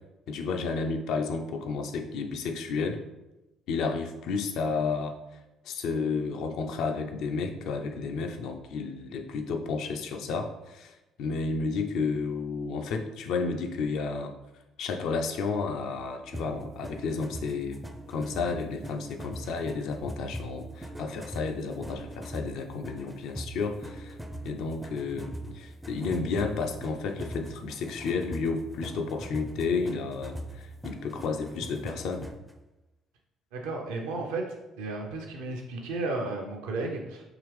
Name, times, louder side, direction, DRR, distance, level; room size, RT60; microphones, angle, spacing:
voice 1, 0.3-3.0 3.7-5.2 5.6-14.3 14.8-17.8 18.1-24.2 24.4-32.3, left 4 dB, 60° left, 5 dB, 0.4 m, -32 dB
sound 1, 16.3-32.5, right 1 dB, 5° right, 0.5 m, -41 dB
voice 2, 33.5-34.5 34.8-37.2, right 3 dB, 70° right, 2 dB, 0.6 m, -33 dB
4.9 x 3.0 x 3.1 m, 0.98 s
figure-of-eight pair, 50°, 0 cm